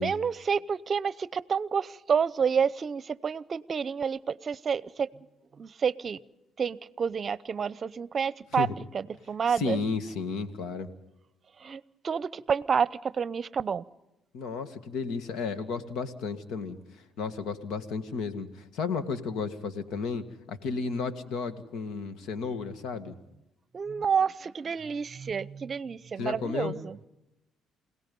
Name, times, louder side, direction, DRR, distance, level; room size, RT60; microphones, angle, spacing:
voice 1, 0.0-5.1 5.6-6.2 6.6-8.7 8.9-9.8 11.6-13.8 23.7-27.0, right 6 dB, 45° right, 19 dB, 0.7 m, -29 dB
voice 2, 9.5-10.9 14.3-16.8 17.2-23.1 26.2-26.8, left 4 dB, 80° left, 10 dB, 1.9 m, -33 dB
28.5 x 17.5 x 5.5 m, 0.91 s
supercardioid pair, 80°, 0 cm